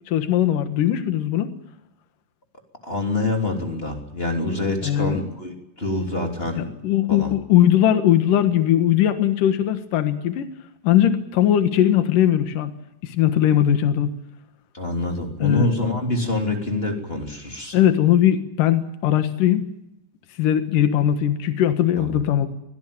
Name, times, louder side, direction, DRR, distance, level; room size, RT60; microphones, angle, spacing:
voice 1, 0.1-1.5 4.8-5.2 6.6-10.5 10.8-12.7 13.0-14.1 15.4-15.7 17.7-19.7 20.4-22.5, left 11 dB, 75° left, 9 dB, 3.1 m, -19 dB
voice 2, 2.8-6.7 7.1-7.3 14.7-17.8 22.0-22.1, left 2 dB, 15° left, 3 dB, 3.0 m, -26 dB
24.0 x 18.0 x 8.9 m, 0.86 s
omnidirectional pair, 3.9 m